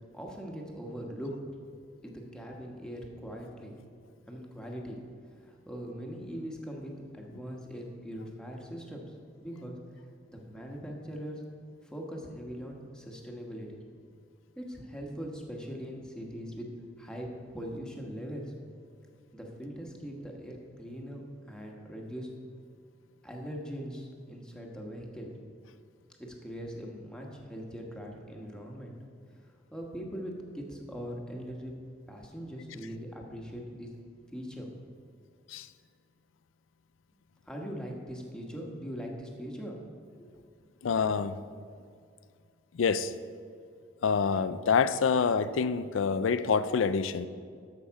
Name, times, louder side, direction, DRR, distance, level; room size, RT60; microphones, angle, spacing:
voice 1, 0.1-1.4 2.0-3.8 4.3-5.0 5.4-9.1 9.4-9.8 10.3-11.4 11.8-13.8 14.6-16.7 17.0-18.5 19.3-21.2 21.5-22.3 23.2-25.3 26.2-28.9 29.7-31.7 32.1-33.9 34.3-34.7 37.5-39.8 40.2-40.5, equal, 5° left, 1.2 m, -41 dB
voice 2, 40.8-41.4 42.7-43.1 44.0-47.3, left 5 dB, 90° left, 0.4 m, -26 dB
13.5 x 5.7 x 4.7 m
head